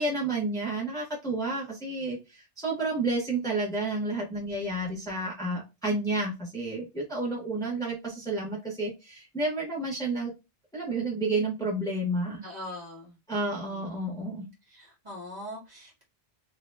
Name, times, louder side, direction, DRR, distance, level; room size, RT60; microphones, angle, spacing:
voice 1, 0.0-10.3 10.7-12.4 13.3-14.5, right 2 dB, 5° left, -4 dB, 1.1 m, -30 dB
voice 2, 12.4-13.2 13.6-14.1 14.7-16.0, left 1 dB, 45° right, -3 dB, 1.7 m, -42 dB
2.9 x 2.7 x 3.2 m, 0.25 s
omnidirectional pair, 1.0 m